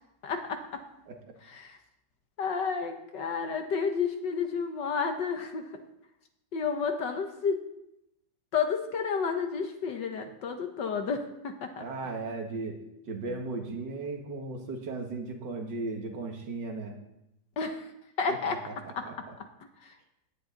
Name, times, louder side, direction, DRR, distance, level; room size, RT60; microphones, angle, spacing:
voice 1, 0.2-0.8 1.5-1.8 2.4-5.6 6.5-7.6 8.5-11.8 17.6-17.9 18.2-18.6 18.9-19.0 19.8-19.9, left 5 dB, 70° left, 5 dB, 1.8 m, -31 dB
voice 2, 11.8-12.8 13.1-16.9 18.3-19.3, right 3 dB, 70° right, 3 dB, 2.4 m, -36 dB
17.5 x 11.0 x 4.0 m, 0.85 s
omnidirectional pair, 2.0 m